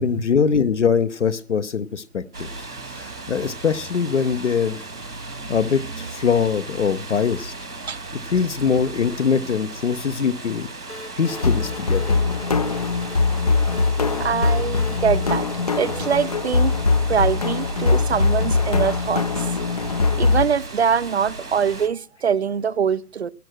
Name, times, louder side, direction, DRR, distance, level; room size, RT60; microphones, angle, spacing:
voice 1, 0.0-2.5 2.9-4.8 5.5-7.5 8.3-10.7 11.2-12.2, left 6 dB, 50° left, 0.9 m, -22 dB
sound 1, 2.3-21.9, right 3 dB, 80° right, 2.7 m, -36 dB
sound 2, 10.9-16.4, left 2 dB, 90° left, 5.0 m, -41 dB
sound 3, 11.3-20.5, left 4 dB, 25° left, 0.6 m, -21 dB
voice 2, 14.2-15.5 15.8-16.7 17.1-19.5 20.2-23.3, right 7 dB, 45° right, 0.6 m, -23 dB
12.0 x 10.5 x 6.3 m
figure-of-eight pair, 140°, 45 cm